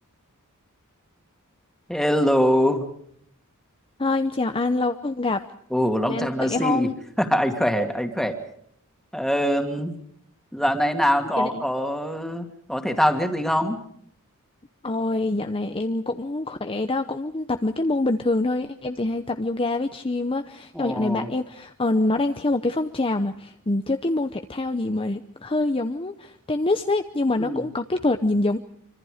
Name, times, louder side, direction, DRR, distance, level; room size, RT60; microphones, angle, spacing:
voice 1, 1.9-2.9 5.7-6.9 7.2-8.4 9.1-9.9 10.5-13.8 20.7-21.3 27.4-27.6, equal, ahead, 5 dB, 2.4 m, -23 dB
voice 2, 4.0-5.5 6.1-6.9 11.4-11.6 14.8-28.6, left 2 dB, 25° left, 8 dB, 0.8 m, -25 dB
26.5 x 25.5 x 5.0 m, 0.66 s
head